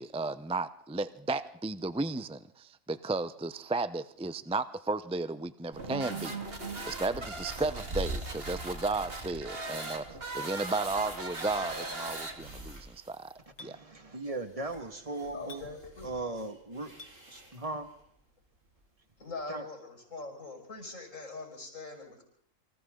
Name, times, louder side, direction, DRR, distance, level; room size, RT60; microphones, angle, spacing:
voice 1, 0.0-6.4 6.8-10.1 10.3-13.3 13.6-13.8, right 3 dB, 5° right, 13 dB, 0.5 m, -34 dB
sound 1, 5.7-12.7, right 2 dB, 45° right, 2.8 m, -39 dB
sound 2, 7.5-19.4, right 2 dB, 65° right, 5.9 m, -47 dB
Chink clink, 11.4-11.5 13.6-13.7 15.5-15.7 17.0-17.2, left 2 dB, 50° left, 2.0 m, -48 dB
voice 2, 13.6-15.6 16.0-16.9 17.3-17.9 19.5-19.6, right 2 dB, 25° right, 7 dB, 2.1 m, -38 dB
voice 3, 15.3-16.1 19.2-22.2, left 3 dB, 65° left, 2 dB, 5.9 m, -42 dB
29.0 x 24.5 x 3.9 m, 0.68 s
omnidirectional pair, 1.4 m